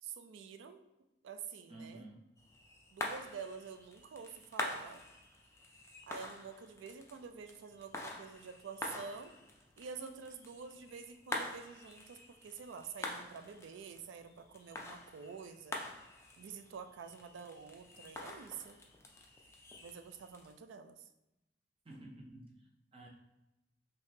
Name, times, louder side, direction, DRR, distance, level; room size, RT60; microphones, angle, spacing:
voice 1, 0.0-0.8 1.2-2.1 2.9-5.0 6.1-9.3 9.8-15.8 16.4-18.8 19.8-21.1, right 6 dB, 85° right, 9 dB, 0.3 m, -48 dB
voice 2, 1.7-2.2 21.8-22.5 22.9-23.1, right 1 dB, 30° right, -1 dB, 0.6 m, -51 dB
sound 1, 2.4-20.5, left 2 dB, 15° left, 0.3 m, -46 dB
3.5 x 2.7 x 2.7 m, 0.92 s
head